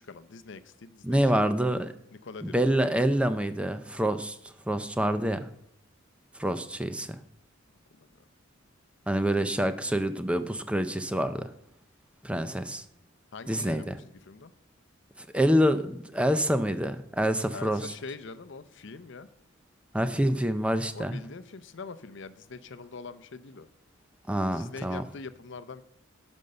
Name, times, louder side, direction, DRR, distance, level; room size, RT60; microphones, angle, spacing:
voice 1, 0.0-1.5 2.2-2.8 8.0-8.1 13.3-14.5 17.5-19.3 20.9-23.7 24.5-25.8, left 4 dB, 60° left, 12 dB, 0.6 m, -43 dB
voice 2, 1.0-1.9 2.4-5.5 6.4-7.2 9.1-11.5 12.2-12.8 13.5-14.0 15.2-17.9 19.9-21.2 24.3-25.0, equal, 5° right, 10 dB, 0.5 m, -27 dB
12.0 x 5.4 x 6.8 m, 0.73 s
head